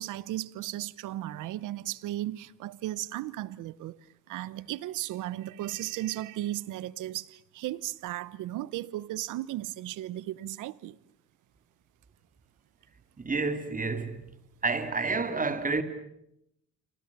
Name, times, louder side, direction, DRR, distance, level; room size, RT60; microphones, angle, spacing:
voice 1, 0.0-4.0 4.3-11.0, right 14 dB, 90° right, 0.9 m, -35 dB
voice 2, 13.2-14.3 14.6-15.8, right 4 dB, 25° right, 2.8 m, -29 dB
29.0 x 25.0 x 7.3 m
cardioid pair, 90°, 30 cm